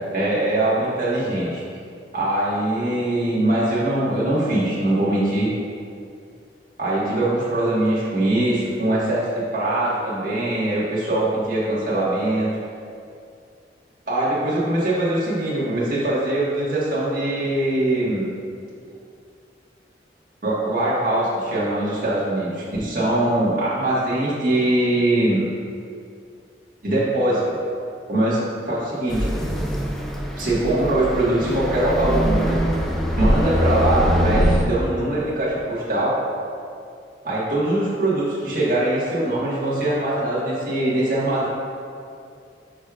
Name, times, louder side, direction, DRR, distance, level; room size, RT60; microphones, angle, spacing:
voice 1, 0.1-1.6 2.1-5.5 6.8-12.5 14.1-18.3 20.4-25.4 26.8-27.6 28.1-29.3 30.4-32.8 33.2-36.2 37.2-41.5, right 1 dB, 50° right, -8 dB, 1.6 m, -22 dB
sound 1, 29.1-34.6, equal, ahead, 0.5 m, -22 dB
9.6 x 4.9 x 2.4 m, 2.4 s
head